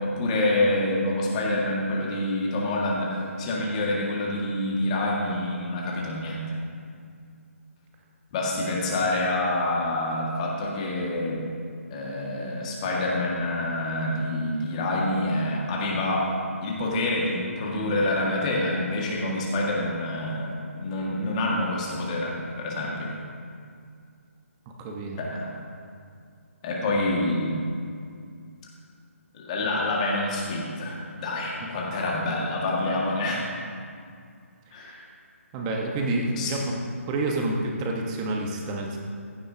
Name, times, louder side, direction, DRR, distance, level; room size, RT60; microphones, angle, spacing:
voice 1, 0.0-6.6 8.3-11.4 11.9-16.3 16.6-23.1 25.2-25.6 26.6-27.6 29.3-33.5 34.7-35.0 36.3-36.5, left 1 dB, 25° left, -3 dB, 2.0 m, -27 dB
voice 2, 24.8-25.2 34.7-34.9 35.5-36.7 37.1-39.0, right 2 dB, 20° right, 0 dB, 1.3 m, -28 dB
15.5 x 11.0 x 2.9 m, 2.3 s
figure-of-eight pair, 155°, 8 cm